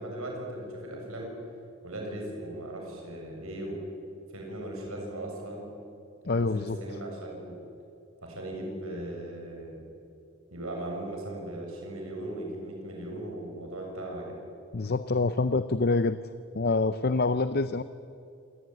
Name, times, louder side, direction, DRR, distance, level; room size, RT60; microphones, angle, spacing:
voice 1, 0.0-1.4 1.8-3.8 4.3-5.7 6.3-7.6 8.2-9.8 10.5-14.4, right 1 dB, 70° right, 0 dB, 7.2 m, -38 dB
voice 2, 6.3-6.8 14.7-16.2 16.5-17.8, left 3 dB, 45° left, 13 dB, 0.6 m, -26 dB
27.5 x 19.0 x 9.2 m, 2.6 s
head